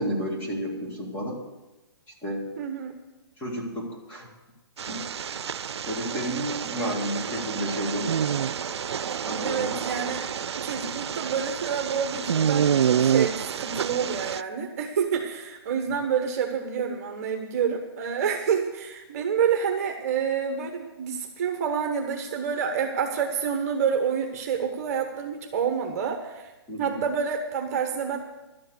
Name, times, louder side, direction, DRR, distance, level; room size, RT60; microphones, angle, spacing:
voice 1, 0.0-1.4 2.2-2.5 3.4-4.3 4.9-5.4 5.9-8.2 9.2-9.7 16.0-16.1 26.7-27.0, equal, 15° left, -3 dB, 2.3 m, -31 dB
voice 2, 2.6-2.9 8.5-8.6 9.1-9.2 9.4-10.2 10.6-26.5 26.8-28.2, right 7 dB, 35° right, 4 dB, 1.2 m, -28 dB
sound 1, 4.8-14.4, right 8 dB, 90° right, 0.4 m, -28 dB
12.0 x 7.7 x 7.9 m, 1.1 s
hypercardioid pair, 160°, 14 cm